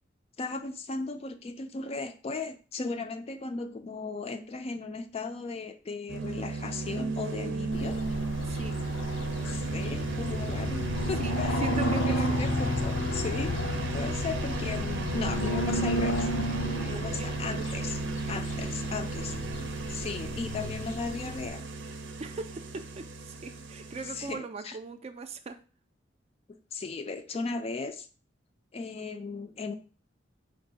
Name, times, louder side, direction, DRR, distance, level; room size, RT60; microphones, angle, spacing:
voice 1, 0.4-8.0 9.4-11.6 12.1-13.6 13.9-16.3 16.8-18.0 18.3-19.4 19.9-21.6 24.1-24.8 26.7-28.1 28.7-29.7, left 4 dB, 35° left, 8 dB, 0.4 m, -36 dB
sound 1, 6.1-24.3, right 3 dB, 85° right, 0.6 m, -35 dB
sound 2, 7.7-21.5, left 1 dB, 85° left, 0.5 m, -32 dB
voice 2, 8.4-8.8 11.2-12.4 16.9-17.3 22.2-25.6, right 4 dB, 35° right, 8 dB, 0.4 m, -39 dB
4.4 x 2.5 x 4.0 m, 0.37 s
head